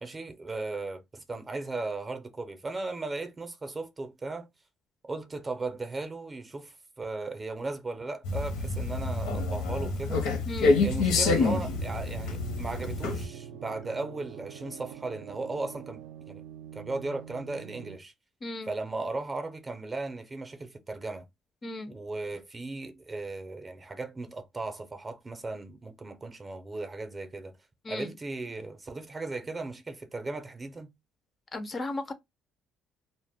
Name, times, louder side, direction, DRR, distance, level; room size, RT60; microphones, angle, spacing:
voice 1, 0.0-4.5 5.1-10.3 10.8-16.4 16.7-18.1 18.7-21.3 21.9-27.5 27.9-30.9, right 3 dB, 20° right, 0.5 m, -37 dB
sound 1, 8.2-13.3, left 3 dB, 85° left, 0.7 m, -27 dB
sound 2, 11.6-18.0, right 9 dB, 80° right, 0.4 m, -45 dB
voice 2, 18.4-18.7 21.6-21.9 27.8-28.1 31.5-32.1, left 2 dB, 30° left, 0.4 m, -35 dB
2.1 x 2.1 x 3.4 m
cardioid pair, 105°, 0 cm